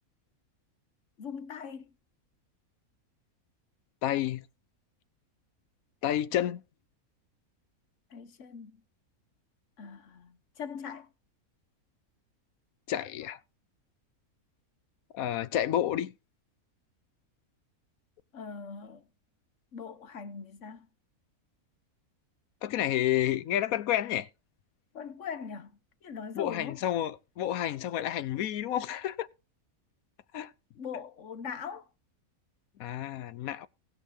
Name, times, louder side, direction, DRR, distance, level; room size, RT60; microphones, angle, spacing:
voice 1, 1.2-1.9 8.1-8.8 9.8-11.1 18.3-19.0 19.7-20.9 24.9-26.8 30.7-31.9, left 6 dB, 60° left, 1.3 m, -41 dB
voice 2, 4.0-4.4 6.0-6.6 12.9-13.4 15.1-16.1 22.6-24.3 26.4-29.3 30.3-30.5 32.8-33.7, left 11 dB, 75° left, 1.1 m, -30 dB
19.5 x 6.7 x 2.7 m
omnidirectional pair, 1.5 m